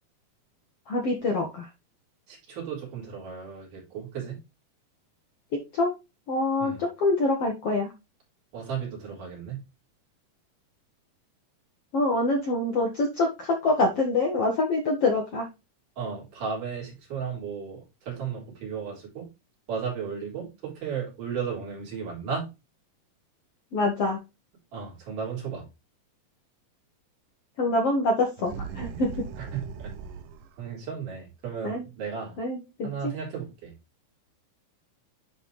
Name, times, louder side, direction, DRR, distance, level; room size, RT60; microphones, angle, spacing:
voice 1, 0.9-1.7 5.5-5.9 6.3-7.9 11.9-15.5 23.7-24.2 27.6-29.2 31.6-31.9 32.4-33.1, left 2 dB, 60° left, 1 dB, 1.7 m, -25 dB
voice 2, 2.3-4.4 6.6-6.8 8.5-9.6 16.0-19.3 19.7-22.5 24.7-25.7 29.4-29.9 30.6-32.4 32.8-33.7, right 6 dB, 60° right, -3 dB, 5.3 m, -34 dB
sound 1, 28.4-30.6, right 6 dB, 75° right, 2.3 m, -39 dB
11.0 x 4.1 x 3.2 m, 0.26 s
omnidirectional pair, 4.2 m